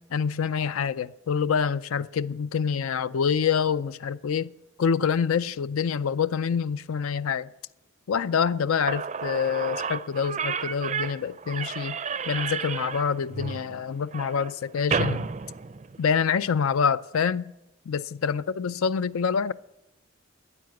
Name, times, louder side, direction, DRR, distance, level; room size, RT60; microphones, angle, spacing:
voice 1, 0.0-4.5 4.8-7.5 8.1-12.0 12.3-15.3 16.0-17.5 17.9-19.5, left 6 dB, 80° left, 0.4 m, -26 dB
Slam / Squeak, 8.6-8.7 8.9-16.3, right 5 dB, 30° right, 0.4 m, -32 dB
12.5 x 9.5 x 9.2 m
head